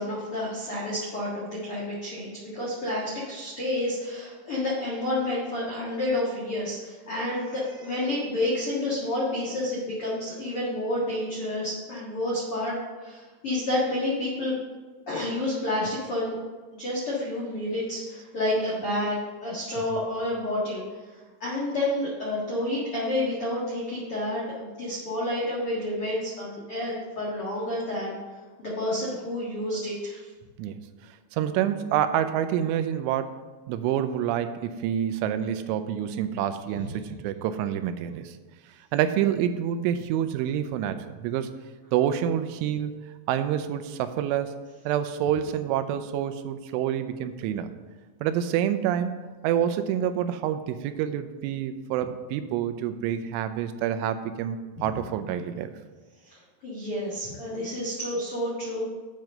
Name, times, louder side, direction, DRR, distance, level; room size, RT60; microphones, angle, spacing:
voice 1, 0.0-12.7 13.0-14.5 15.1-16.4 16.7-20.8 21.4-28.1 28.6-30.2 56.2-58.8, left 1 dB, 90° left, -7 dB, 1.2 m, -29 dB
voice 2, 31.3-33.4 33.7-38.4 38.9-41.5 41.9-42.9 43.3-44.6 44.9-47.7 48.2-55.7, right 10 dB, 85° right, 10 dB, 3.0 m, -27 dB
9.1 x 4.7 x 6.4 m, 1.3 s
omnidirectional pair, 5.6 m